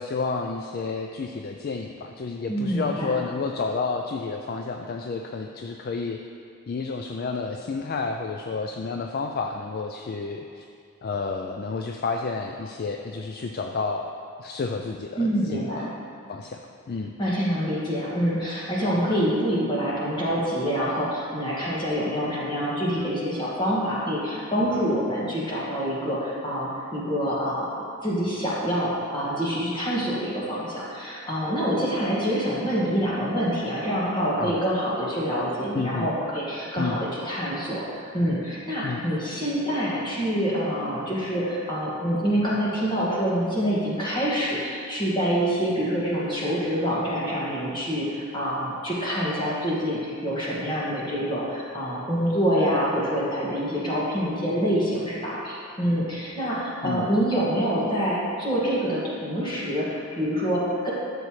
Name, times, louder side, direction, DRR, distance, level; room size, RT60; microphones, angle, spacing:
voice 1, 0.0-6.2 6.7-10.7 11.0-14.1 14.4-15.9 16.3-17.1 34.4-34.6 35.7-36.1 36.8-37.0 38.8-39.0 56.8-57.1, left 4 dB, 45° left, 3 dB, 0.3 m, -30 dB
voice 2, 2.5-3.2 15.2-15.9 17.2-60.9, equal, 20° left, -7 dB, 1.9 m, -26 dB
12.0 x 7.0 x 3.2 m, 2.4 s
head